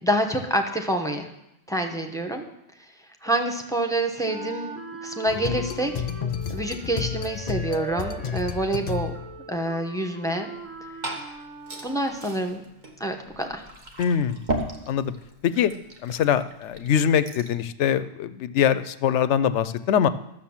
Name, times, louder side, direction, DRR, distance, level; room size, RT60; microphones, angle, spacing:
voice 1, 0.0-1.3 1.7-2.5 3.2-5.9 6.5-9.1 9.5-10.5 11.8-12.6 13.0-13.6, right 1 dB, 5° left, 4 dB, 0.9 m, -27 dB
Wind instrument woodwind instrument, 4.2-12.4, right 4 dB, 85° right, 1.6 m, -41 dB
sound 1, 5.3-9.5, left 8 dB, 50° left, 0.6 m, -31 dB
Liquid, 10.5-17.6, right 2 dB, 40° right, 1.5 m, -37 dB
voice 2, 14.0-14.4 14.9-15.1 15.4-15.7 16.0-20.1, left 8 dB, 70° left, 14 dB, 0.9 m, -23 dB
13.0 x 6.7 x 7.2 m, 0.83 s
omnidirectional pair, 1.3 m